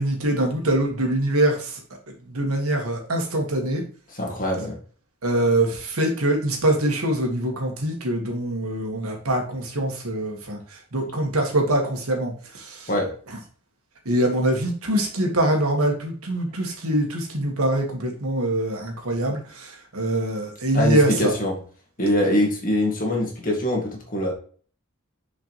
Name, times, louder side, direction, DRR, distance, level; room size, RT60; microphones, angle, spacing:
voice 1, 0.0-1.8 2.3-3.8 5.2-12.9 13.3-13.4 14.1-21.3, right 1 dB, 80° right, 2 dB, 1.9 m, -24 dB
voice 2, 4.2-4.8 12.9-13.1 20.7-21.5 22.0-24.3, left 1 dB, 40° left, -1 dB, 2.1 m, -23 dB
6.6 x 5.1 x 3.1 m, 0.43 s
head